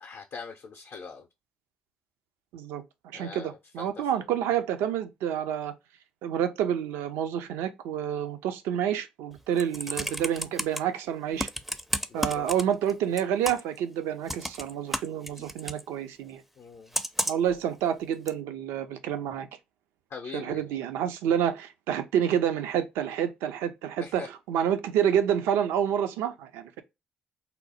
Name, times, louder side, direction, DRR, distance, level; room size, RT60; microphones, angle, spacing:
voice 1, 0.0-1.3 3.1-4.2 12.1-12.5 16.6-16.9 20.1-20.6 24.0-24.3, left 5 dB, 60° left, 0.5 m, -42 dB
voice 2, 2.5-5.7 6.2-11.5 12.1-16.4 17.3-19.5 20.3-26.8, right 9 dB, 80° right, 0.4 m, -28 dB
Computer keyboard, 9.4-10.8 11.4-12.9 13.2-13.8 14.3-15.8 16.9-17.5 18.3-18.4, equal, 5° right, 0.4 m, -31 dB
2.7 x 2.0 x 4.0 m
hypercardioid pair, 45°, 4 cm